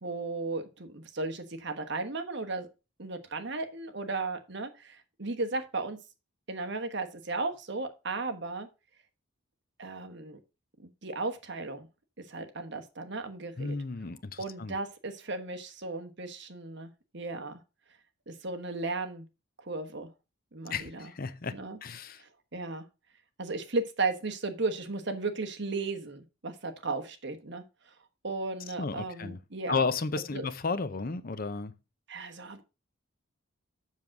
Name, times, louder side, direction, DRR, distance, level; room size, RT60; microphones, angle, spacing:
voice 1, 0.0-2.7 3.0-6.0 6.5-8.7 9.8-10.4 10.8-11.9 12.2-13.7 14.4-17.6 18.3-19.3 19.6-20.1 20.5-21.1 21.5-21.8 22.2-22.8 23.4-27.9 28.2-29.9 30.3-30.4 32.1-32.6, right 3 dB, 55° right, 1.3 m, -35 dB
voice 2, 13.6-14.8 20.7-22.2 28.8-29.4 29.7-31.7, left 4 dB, 45° left, 0.7 m, -33 dB
7.3 x 6.5 x 5.8 m
head